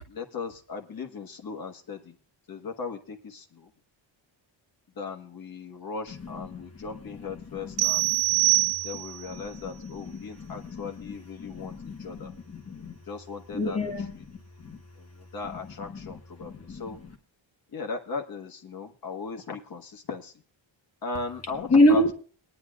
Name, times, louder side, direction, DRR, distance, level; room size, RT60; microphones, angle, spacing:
voice 1, 0.1-2.2 2.5-3.7 4.9-8.2 8.8-12.3 12.9-14.3 15.0-17.0 17.7-20.3 21.0-22.1, left 4 dB, 45° left, 2 dB, 1.4 m, -38 dB
sound 1, 7.8-9.3, right 23 dB, 65° right, 0.9 m, -24 dB
voice 2, 8.4-8.7 9.8-10.8 11.4-12.9 13.5-14.1 14.6-14.8 16.4-16.8 21.7-22.1, left 1 dB, 30° left, 3 dB, 1.1 m, -26 dB
22.0 x 10.0 x 2.3 m, 0.39 s
wide cardioid pair, 175°, 47 cm